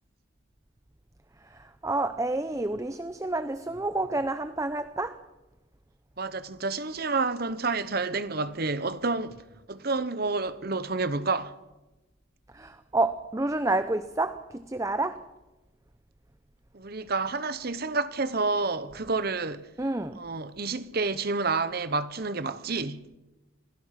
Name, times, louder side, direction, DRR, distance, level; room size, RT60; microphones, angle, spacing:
voice 1, 1.4-5.2 12.5-15.2 19.8-20.2, right 2 dB, 15° right, 0.6 m, -29 dB
voice 2, 6.2-11.5 16.7-19.7 20.1-23.0, right 3 dB, 45° right, 0.9 m, -29 dB
26.5 x 17.0 x 5.9 m
head